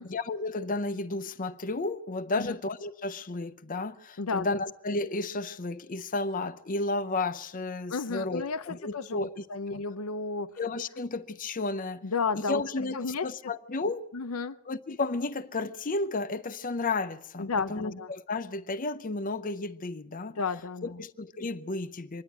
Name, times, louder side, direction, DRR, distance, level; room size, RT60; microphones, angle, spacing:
voice 1, 0.0-9.4 9.7-9.8 10.6-12.0 12.3-14.1 14.7-20.4 21.0-22.2, left 3 dB, 40° left, 0.7 m, -33 dB
voice 2, 4.2-4.6 7.9-10.5 12.0-12.6 12.9-13.3 14.1-14.6 17.4-18.1 20.4-21.0, left 4 dB, 85° left, 0.7 m, -32 dB
25.0 x 11.0 x 9.3 m
head